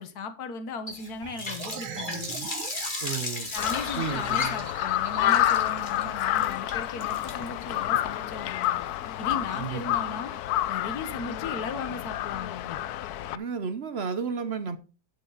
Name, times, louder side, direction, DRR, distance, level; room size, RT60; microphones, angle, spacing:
voice 1, 0.0-2.3 3.5-8.8 9.2-10.3 10.7-12.8, left 4 dB, 55° left, 1.7 m, -37 dB
Water tap faucet, 0.9-9.8, left 2 dB, 25° left, 1.8 m, -37 dB
sound 1, 1.2-5.6, right 9 dB, 90° right, 1.8 m, -42 dB
voice 2, 3.0-3.5 3.9-4.7 9.5-10.0 13.3-14.8, right 6 dB, 60° right, 0.6 m, -33 dB
Crow, 3.6-13.4, left 13 dB, 75° left, 0.9 m, -29 dB
12.0 x 6.1 x 4.0 m
omnidirectional pair, 2.1 m